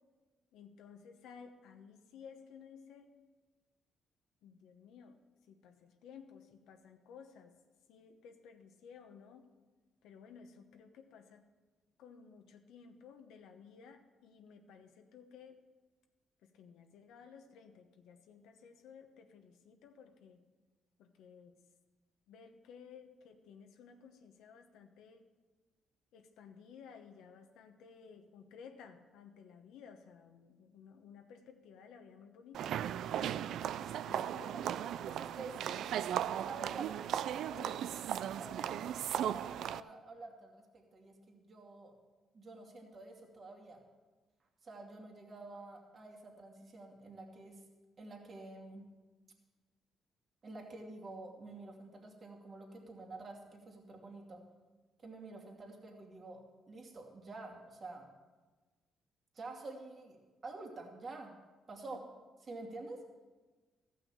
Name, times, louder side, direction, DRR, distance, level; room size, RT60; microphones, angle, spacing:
voice 1, 0.5-3.2 4.4-5.2 5.5-7.6 7.9-9.5 10.0-11.4 12.0-15.6 16.4-20.4 21.0-21.6 22.3-25.3 26.1-32.8 34.0-34.6 35.7-35.8 36.6-36.7 37.3-37.9 61.9-62.0, left 6 dB, 85° left, 5 dB, 1.1 m, -56 dB
sound 1, 32.5-39.8, right 10 dB, 75° right, 0.3 m, -37 dB
voice 2, 34.1-34.6 35.1-35.6 36.4-36.8 38.3-41.9 42.3-43.8 44.6-47.6 48.0-48.9 50.4-54.4 55.0-56.4 56.7-58.1 59.3-61.3 61.7-62.0 62.4-63.0, right 3 dB, 40° right, 0 dB, 2.3 m, -49 dB
14.5 x 5.9 x 8.8 m, 1.3 s
cardioid pair, 90°, 0 cm